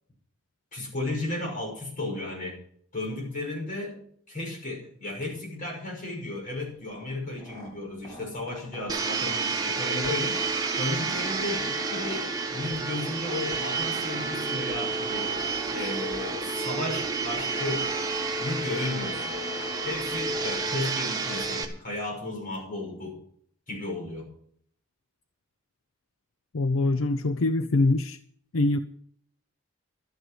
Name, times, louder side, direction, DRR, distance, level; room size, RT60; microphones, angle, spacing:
voice 1, 0.7-2.6 2.9-4.0 4.3-10.4 10.8-15.3 15.7-17.9 18.4-19.4 19.8-23.2 23.7-24.3, left 2 dB, 40° left, -1 dB, 5.9 m, -34 dB
sound 1, 6.5-21.0, left 1 dB, 20° left, 4.3 m, -44 dB
Domestic sounds home sounds, 8.9-21.6, right 4 dB, 20° right, 1.5 m, -30 dB
voice 2, 26.5-28.2 28.5-28.8, left 2 dB, 80° left, 10 dB, 0.6 m, -24 dB
13.0 x 8.2 x 7.6 m, 0.63 s
head